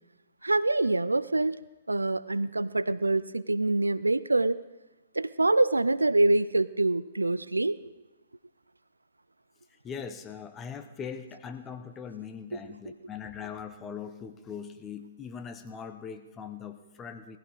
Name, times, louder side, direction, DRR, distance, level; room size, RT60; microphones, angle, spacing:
voice 1, 0.4-1.6 1.9-4.6 5.1-7.9 12.9-13.0, right 2 dB, 85° right, 18 dB, 0.5 m, -25 dB
voice 2, 9.7-17.4, left 7 dB, 20° left, 8 dB, 1.3 m, -41 dB
19.0 x 15.0 x 4.9 m, 1.1 s
figure-of-eight pair, 120°, 0 cm